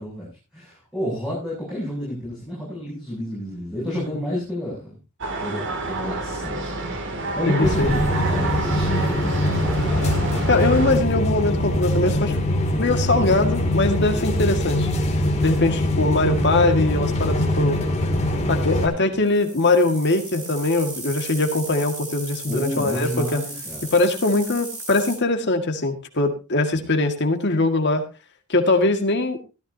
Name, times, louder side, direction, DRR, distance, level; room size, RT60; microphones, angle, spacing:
voice 1, 0.0-5.0 5.4-9.8 18.7-19.1 22.5-23.9 26.7-26.9, equal, ahead, -8 dB, 7.5 m, -31 dB
sound 1, 5.2-10.9, right 2 dB, 55° right, 2.6 m, -28 dB
voice 2, 7.5-8.0 10.5-12.4 12.8-14.9 15.4-17.8 18.5-23.4 23.9-28.0 28.5-29.4, left 2 dB, 50° left, 6 dB, 1.9 m, -21 dB
sound 2, 7.6-18.9, left 1 dB, 30° left, 2.6 m, -23 dB
sound 3, 19.2-25.1, right 2 dB, 35° right, 7.9 m, -36 dB
16.0 x 14.0 x 2.8 m, 0.30 s
head